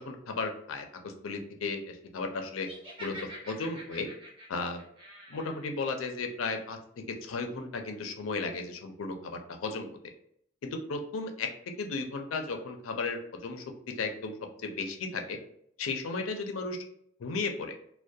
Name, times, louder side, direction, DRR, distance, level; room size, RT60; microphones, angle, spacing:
voice 1, 0.0-2.7 3.0-4.1 4.5-4.8 5.3-6.8 7.1-9.9 10.6-11.5 11.8-13.6 14.0-14.3 14.6-15.4 15.8-16.8 17.2-17.8, left 3 dB, 80° left, 5 dB, 0.4 m, -35 dB
Laughter, 2.6-5.6, equal, 25° right, 0.6 m, -46 dB
2.3 x 2.1 x 2.6 m, 0.70 s
head